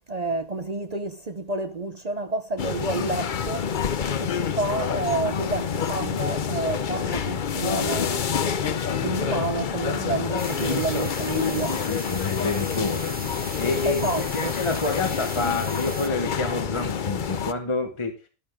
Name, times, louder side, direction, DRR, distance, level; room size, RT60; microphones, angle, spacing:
voice 1, 0.1-3.7 4.2-8.1 9.0-11.8 13.8-14.5, right 3 dB, 60° right, 0.4 m, -29 dB
sound 1, 2.6-17.5, left 7 dB, 80° left, 0.4 m, -27 dB
sound 2, 10.4-16.1, right 1 dB, 5° right, 0.8 m, -38 dB
voice 2, 11.7-13.1 13.6-18.1, left 3 dB, 20° left, 0.9 m, -28 dB
12.5 x 12.0 x 3.7 m
omnidirectional pair, 1.9 m